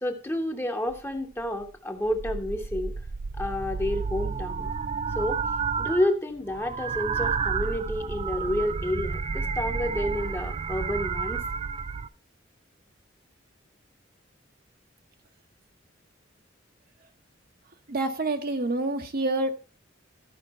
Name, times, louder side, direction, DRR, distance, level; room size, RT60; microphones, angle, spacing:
voice 1, 0.0-2.9 3.4-4.7 5.1-5.4 5.8-11.4, left 1 dB, 10° left, 1.0 m, -29 dB
sound 1, 0.9-1.0 1.4-1.7 2.0-6.1 6.4-12.1, right 5 dB, 30° right, 0.3 m, -31 dB
voice 2, 17.9-19.5, right 2 dB, 50° right, 0.9 m, -27 dB
13.0 x 5.1 x 4.3 m
head